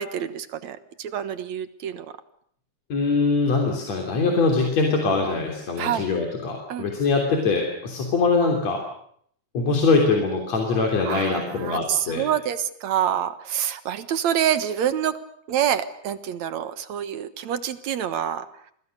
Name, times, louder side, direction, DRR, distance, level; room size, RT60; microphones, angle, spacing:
voice 1, 0.0-2.1 5.8-6.1 6.7-6.9 11.1-15.1 15.5-18.5, right 10 dB, 70° right, 12 dB, 2.6 m, -27 dB
voice 2, 2.9-8.8 9.5-12.3, left 4 dB, 65° left, 1 dB, 4.5 m, -22 dB
29.5 x 23.5 x 6.6 m, 0.66 s
omnidirectional pair, 3.4 m